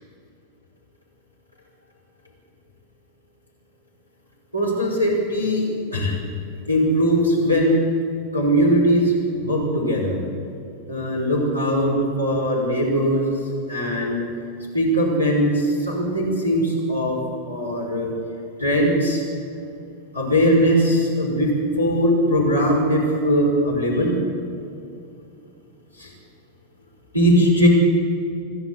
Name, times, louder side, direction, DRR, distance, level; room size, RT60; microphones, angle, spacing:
voice 1, 4.5-5.6 5.9-6.1 6.7-7.8 8.3-9.1 9.4-10.2 10.9-13.2 13.7-14.2 14.7-17.2 17.5-18.1 18.6-19.2 20.1-24.2 26.0-26.1 27.1-27.7, equal, 90° left, -3 dB, 5.7 m, -20 dB
26.0 x 12.0 x 8.4 m, 2.7 s
figure-of-eight pair, 90°, 0 cm